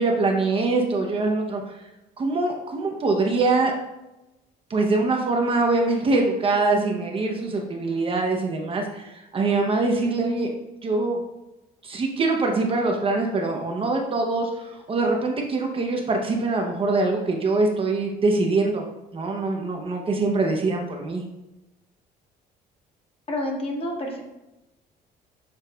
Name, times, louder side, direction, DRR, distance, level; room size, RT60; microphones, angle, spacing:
voice 1, 0.0-1.7 2.2-3.7 4.7-10.5 10.8-11.2 11.8-18.8 19.1-21.2, right 3 dB, 35° right, 1 dB, 0.6 m, -23 dB
voice 2, 23.3-24.2, left 1 dB, 35° left, 1 dB, 1.0 m, -28 dB
6.6 x 3.1 x 2.2 m, 0.98 s
cardioid pair, 110°, 17 cm